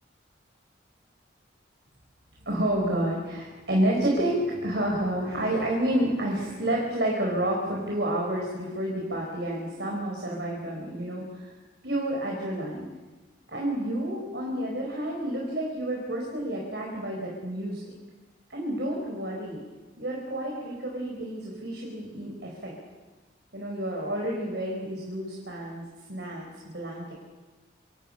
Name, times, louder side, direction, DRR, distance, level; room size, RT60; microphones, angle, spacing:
voice 1, 2.4-11.5 11.8-12.8 13.5-17.9 18.5-19.6 20.0-22.7 23.5-25.8 26.1-27.1, right 1 dB, 70° right, -1 dB, 4.9 m, -29 dB
27.0 x 25.0 x 5.6 m, 1.3 s
head